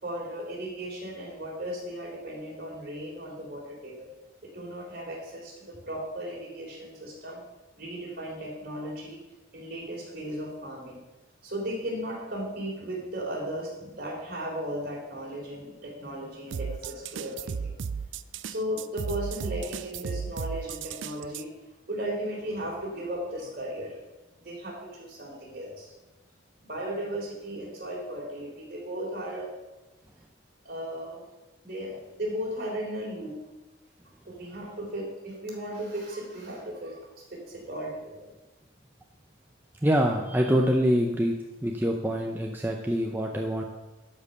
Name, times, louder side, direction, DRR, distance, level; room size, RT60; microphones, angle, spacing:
voice 1, 0.0-4.1 4.4-7.4 7.8-9.2 9.5-11.0 11.4-17.7 18.4-21.5 21.9-24.0 24.4-25.9 26.6-29.5 30.6-31.2 31.6-33.3 34.3-38.2, equal, 50° right, -3 dB, 3.6 m, -36 dB
sound 1, 16.5-21.4, right 6 dB, 65° right, 0.4 m, -35 dB
voice 2, 39.8-41.3 41.6-43.6, equal, 10° right, 1 dB, 0.6 m, -25 dB
12.0 x 5.2 x 6.6 m, 1.1 s
head